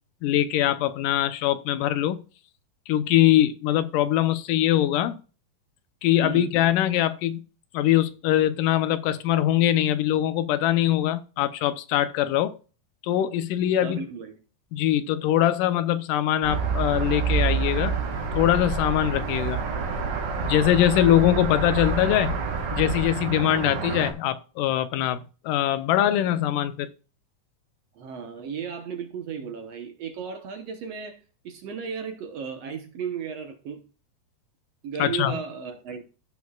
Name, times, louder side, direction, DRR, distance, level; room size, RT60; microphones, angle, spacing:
voice 1, 0.2-2.2 2.9-5.2 6.0-7.4 7.7-12.6 13.0-14.0 14.7-17.9 18.4-19.6 20.4-22.3 22.7-26.9 35.0-35.4, left 12 dB, 80° left, 2.3 m, -22 dB
voice 2, 6.2-6.5 13.8-14.4 27.9-33.8 34.8-36.0, right 6 dB, 60° right, 1.9 m, -35 dB
sound 1, 16.4-24.1, right 5 dB, 85° right, 3.8 m, -28 dB
15.5 x 6.2 x 2.4 m
omnidirectional pair, 3.8 m